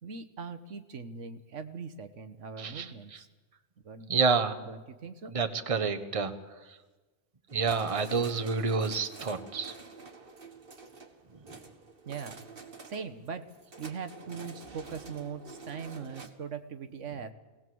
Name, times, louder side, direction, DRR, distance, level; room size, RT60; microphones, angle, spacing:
voice 1, 0.0-3.3 3.8-4.3 4.7-5.3 12.0-12.5 12.8-13.5 13.8-17.3, right 6 dB, 85° right, 8 dB, 1.5 m, -41 dB
voice 2, 2.6-3.2 4.1-4.6 5.3-6.3 7.5-9.7, right 4 dB, 30° right, 9 dB, 1.2 m, -29 dB
sound 1, 7.5-16.3, right 4 dB, 50° right, 1.7 m, -48 dB
20.5 x 18.0 x 7.8 m, 1.2 s
omnidirectional pair, 1.2 m